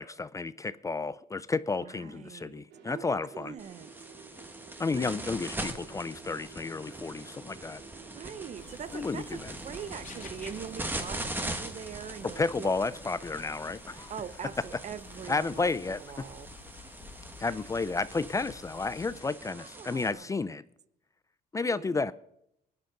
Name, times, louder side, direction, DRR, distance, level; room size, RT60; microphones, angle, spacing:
voice 1, 0.0-3.5 4.8-7.8 8.9-9.5 12.4-14.1 15.3-16.0 17.4-20.6 21.5-22.1, left 3 dB, 20° left, 0.4 m, -32 dB
voice 2, 1.8-3.9 4.9-5.4 8.1-12.8 14.1-15.7 16.0-16.5 17.5-17.7 19.4-20.6 21.6-22.1, right 8 dB, 45° right, 0.7 m, -43 dB
sound 1, 2.7-18.8, right 6 dB, 85° right, 2.7 m, -55 dB
sound 2, 3.6-20.1, right 1 dB, 10° right, 1.6 m, -42 dB
sound 3, 8.6-19.2, left 6 dB, 45° left, 1.9 m, -52 dB
21.5 x 10.5 x 3.9 m
cardioid pair, 110°, 17 cm